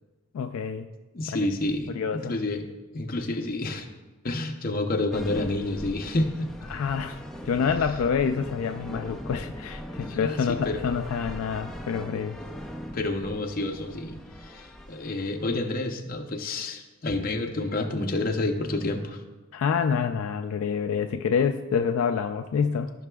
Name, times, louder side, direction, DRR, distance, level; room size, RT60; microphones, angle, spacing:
voice 1, 0.3-0.9 1.3-1.4 1.9-2.3 6.7-7.2 7.4-12.4 19.5-22.9, left 6 dB, 70° left, 6 dB, 0.3 m, -27 dB
voice 2, 1.1-2.6 2.9-3.9 4.2-6.5 10.1-10.8 12.9-19.2, left 2 dB, 40° left, 3 dB, 0.6 m, -29 dB
sound 1, 5.1-15.8, equal, ahead, 0.4 m, -40 dB
14.0 x 5.7 x 2.3 m, 1.2 s
head